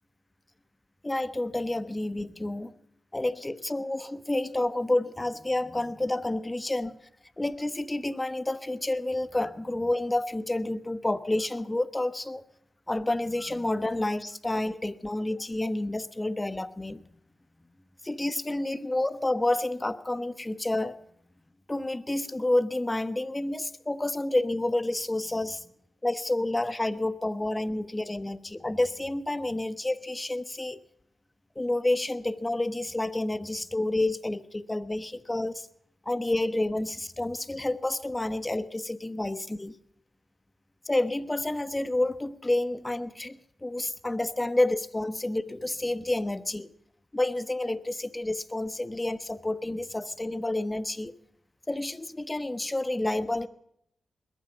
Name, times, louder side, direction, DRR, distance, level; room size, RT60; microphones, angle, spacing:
voice 1, 1.0-2.7 3.1-7.0 7.4-12.4 12.9-17.0 18.0-21.0 21.7-25.6 26.0-30.8 31.5-35.7 36.0-39.8 40.8-46.7 47.1-51.1 51.7-53.5, left 1 dB, 20° left, 14 dB, 1.1 m, -29 dB
21.0 x 9.3 x 7.3 m, 0.73 s
cardioid pair, 50°, 0 cm